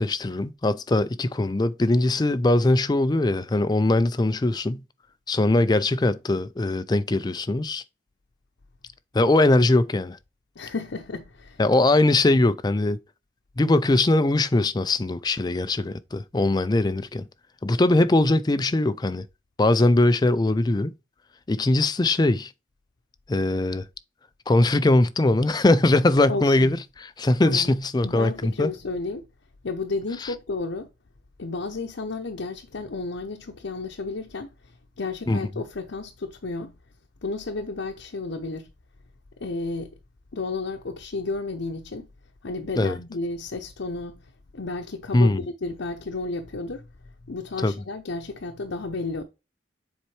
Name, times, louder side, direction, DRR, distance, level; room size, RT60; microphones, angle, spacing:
voice 1, 0.0-4.8 5.3-7.8 9.1-10.2 11.6-13.0 13.6-17.3 17.6-19.2 19.6-20.9 21.5-22.5 23.3-23.8 24.5-26.8 27.2-28.7 35.3-35.4 42.8-43.0 45.1-45.4 47.6-47.7, left 2 dB, 20° left, 0.4 m, -21 dB
voice 2, 10.6-11.6 26.3-26.7 27.4-27.7 28.0-29.2 29.6-30.9 31.4-36.7 37.2-38.7 39.4-39.9 40.3-42.1 42.4-44.2 44.5-45.3 45.6-46.8 47.3-49.2, left 3 dB, 85° left, 0.8 m, -32 dB
7.2 x 4.3 x 3.2 m
head